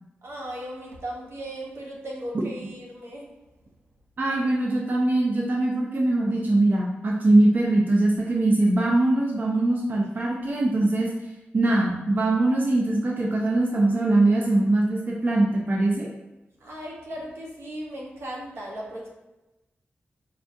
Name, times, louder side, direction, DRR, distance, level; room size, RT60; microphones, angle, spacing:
voice 1, 0.2-3.5 16.6-19.1, right 1 dB, 80° right, -2 dB, 0.9 m, -37 dB
voice 2, 4.2-11.1 11.5-16.1, right 2 dB, 45° right, -3 dB, 0.6 m, -22 dB
5.5 x 2.4 x 2.6 m, 1.0 s
wide cardioid pair, 85°, 4 cm